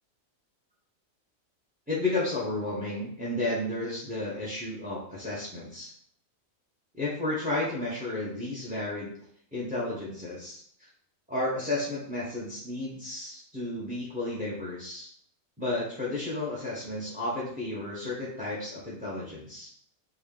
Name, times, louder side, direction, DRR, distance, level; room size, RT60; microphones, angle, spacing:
voice 1, 1.9-5.9 6.9-9.1 9.5-10.9 11.3-15.1 15.6-19.7, left 2 dB, 10° right, -6 dB, 0.4 m, -32 dB
3.3 x 2.3 x 3.6 m, 0.62 s
omnidirectional pair, 1.4 m